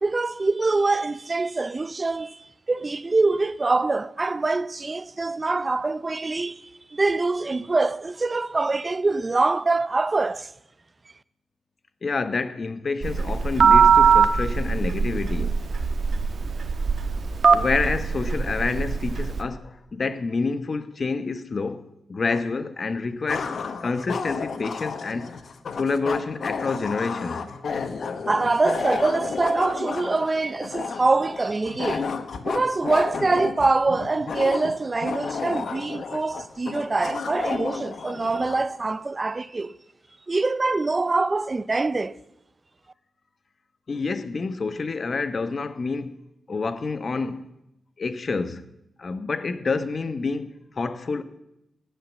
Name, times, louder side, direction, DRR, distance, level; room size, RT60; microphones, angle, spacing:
voice 1, 0.0-6.6 6.9-10.5 28.3-32.1 32.5-39.7 40.3-42.1, right 3 dB, 25° right, 0.5 m, -24 dB
voice 2, 12.0-15.6 17.5-25.3 25.8-27.5 43.9-46.2 46.5-47.5 48.0-48.6 49.0-51.2, left 4 dB, 40° left, 1.0 m, -28 dB
Telephone, 13.0-19.4, right 6 dB, 55° right, 1.3 m, -21 dB
sound 1, 22.3-22.4 23.3-38.7, left 5 dB, 60° left, 1.2 m, -32 dB
17.5 x 10.5 x 7.4 m
wide cardioid pair, 120°, 0 cm